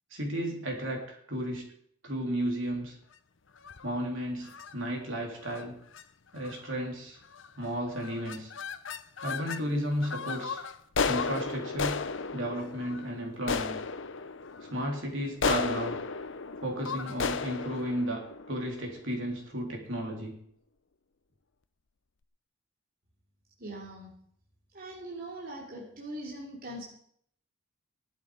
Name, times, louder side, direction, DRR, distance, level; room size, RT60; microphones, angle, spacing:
voice 1, 0.1-1.7 2.0-2.9 3.8-5.8 6.3-7.2 7.6-8.5 9.2-10.6 11.1-12.0 12.3-13.8 14.7-16.0 16.6-20.4, equal, 60° right, 0 dB, 3.7 m, -33 dB
sound 1, 3.6-3.9 4.5-4.7 5.4-5.7 5.9-6.0 6.4-6.8 7.3-7.7 7.9-9.6 10.0-19.2, left 5 dB, 60° left, 0.8 m, -34 dB
voice 2, 23.6-24.1 24.7-26.8, right 1 dB, 40° right, -3 dB, 3.1 m, -41 dB
17.5 x 12.0 x 5.0 m, 0.66 s
head